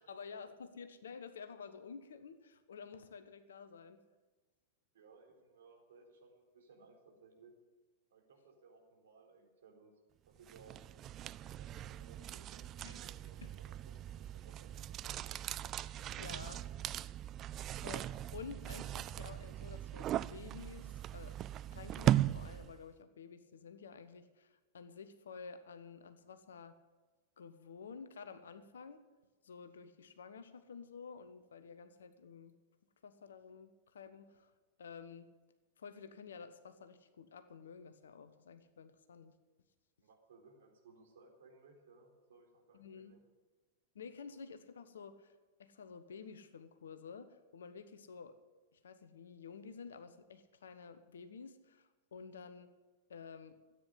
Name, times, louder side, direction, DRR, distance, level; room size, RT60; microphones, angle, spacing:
voice 1, 0.0-4.0 12.8-13.0 13.2-13.5 15.8-16.6 17.7-21.4 21.7-26.8 27.4-29.0 29.4-32.6 33.0-34.5 34.8-35.3 35.8-39.4 42.7-43.1 43.9-45.3 45.6-48.4 48.7-52.7 53.1-53.6, left 6 dB, 65° left, 11 dB, 1.1 m, -51 dB
voice 2, 4.9-7.5 8.1-9.9 10.3-10.8 11.5-15.4 16.0-17.0 40.0-43.2, right 4 dB, 60° right, 1 dB, 4.0 m, -62 dB
sound 1, 10.5-22.8, right 12 dB, 30° right, 0.4 m, -39 dB
14.0 x 9.5 x 9.7 m, 1.3 s
figure-of-eight pair, 95°, 0 cm